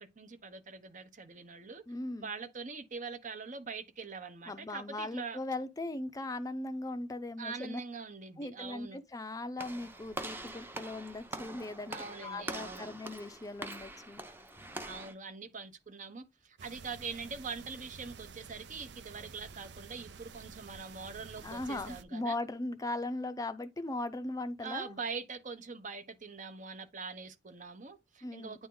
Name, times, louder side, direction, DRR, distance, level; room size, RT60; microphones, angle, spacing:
voice 1, 0.0-1.8 2.2-5.4 7.4-9.0 11.9-13.0 14.8-22.4 24.6-28.7, right 5 dB, 45° right, 0.9 m, -43 dB
voice 2, 1.9-2.3 4.5-7.8 8.4-12.0 12.2-14.2 21.4-24.9 28.2-28.6, left 2 dB, 20° left, 0.5 m, -38 dB
Walk footsteps / Slam, 9.6-15.1, right 2 dB, 10° right, 0.7 m, -44 dB
sound 1, 16.6-22.0, right 5 dB, 70° right, 0.5 m, -51 dB
9.4 x 3.6 x 3.8 m
head